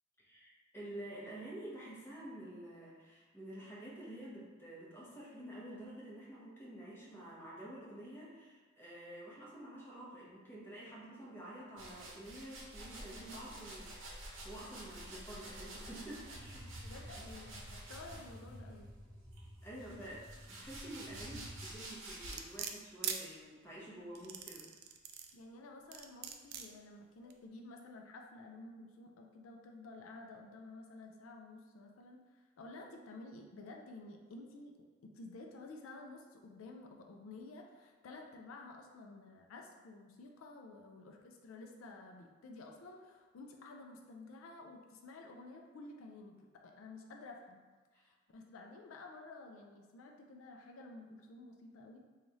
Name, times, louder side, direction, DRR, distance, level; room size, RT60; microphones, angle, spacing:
voice 1, 0.2-16.8 19.6-20.1 20.4-24.7 47.9-48.0, right 1 dB, 10° left, -7 dB, 0.8 m, -49 dB
sound 1, 11.8-18.6 19.3-22.6, right 1 dB, 65° right, 0.8 m, -50 dB
sound 2, 16.3-21.7, equal, 45° left, 0.7 m, -52 dB
voice 2, 16.8-18.9 19.9-20.1 25.3-34.8 35.0-47.7 47.9-52.0, left 2 dB, 90° left, 2 dB, 0.4 m, -52 dB
sound 3, 22.3-23.2 24.1-25.3 25.9-26.7 27.3-27.4, right 8 dB, 50° right, 0.3 m, -41 dB
3.1 x 2.4 x 4.0 m, 1.4 s
head